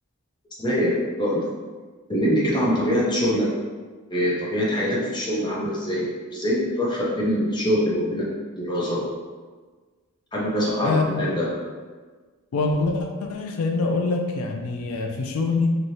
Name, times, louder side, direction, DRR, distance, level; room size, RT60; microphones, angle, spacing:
voice 1, 0.6-1.5 2.1-3.5 4.1-8.3 8.6-9.0 10.3-11.5, equal, 20° left, -5 dB, 0.6 m, -24 dB
voice 2, 10.8-11.3 12.5-15.8, left 3 dB, 85° left, 2 dB, 0.4 m, -24 dB
3.1 x 2.7 x 2.7 m, 1.4 s
head